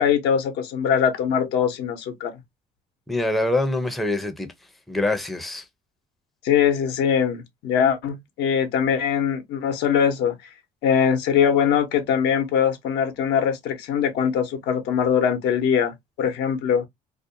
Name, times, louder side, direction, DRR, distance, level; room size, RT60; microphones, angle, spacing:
voice 1, 0.0-2.3 6.4-10.3 10.8-16.8, left 8 dB, 80° left, 0.8 m, -22 dB
voice 2, 3.1-4.5 4.9-5.6, left 2 dB, ahead, 0.5 m, -24 dB
2.5 x 2.1 x 2.6 m
cardioid pair, 110°, 17 cm